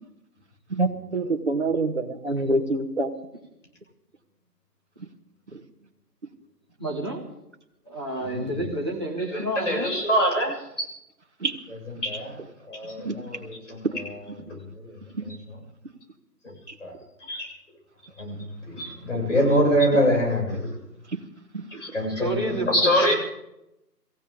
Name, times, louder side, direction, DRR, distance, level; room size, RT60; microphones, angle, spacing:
voice 1, 0.8-3.1 11.4-11.6 13.0-13.2 21.5-21.6, right 2 dB, 45° right, 6 dB, 1.5 m, -25 dB
voice 2, 6.8-7.3 7.9-9.9 22.2-23.1, right 1 dB, 15° right, -4 dB, 1.6 m, -30 dB
voice 3, 8.2-8.6 9.3-10.9 11.7-15.6 16.4-16.5 16.8-17.5 18.2-20.8 21.7-23.1, equal, 45° left, -2 dB, 7.1 m, -26 dB
25.0 x 15.5 x 3.7 m, 0.85 s
figure-of-eight pair, 175°, 49 cm